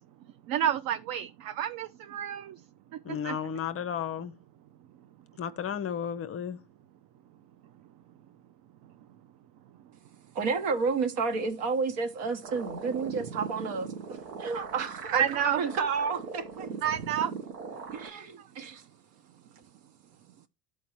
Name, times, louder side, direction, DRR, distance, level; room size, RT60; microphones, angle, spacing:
voice 1, 0.5-2.4 3.2-3.4 15.1-15.6 16.8-17.3, right 9 dB, 45° right, 0.5 m, -29 dB
voice 2, 3.0-4.3 5.4-6.6, left 8 dB, 30° left, 0.6 m, -33 dB
voice 3, 10.3-16.7 17.9-18.8, right 4 dB, 65° right, 1.4 m, -31 dB
sound 1, 12.4-18.1, right 5 dB, 85° right, 1.0 m, -40 dB
13.5 x 4.6 x 3.0 m
hypercardioid pair, 75°, 48 cm